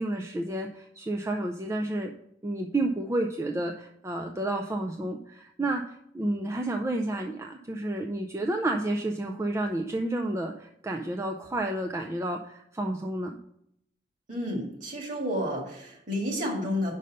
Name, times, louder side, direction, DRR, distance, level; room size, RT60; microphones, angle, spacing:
voice 1, 0.0-2.1 2.4-13.4, right 1 dB, 15° right, 2 dB, 0.4 m, -30 dB
voice 2, 14.3-16.9, equal, 45° right, 1 dB, 1.9 m, -31 dB
5.4 x 5.3 x 6.4 m, 0.74 s
head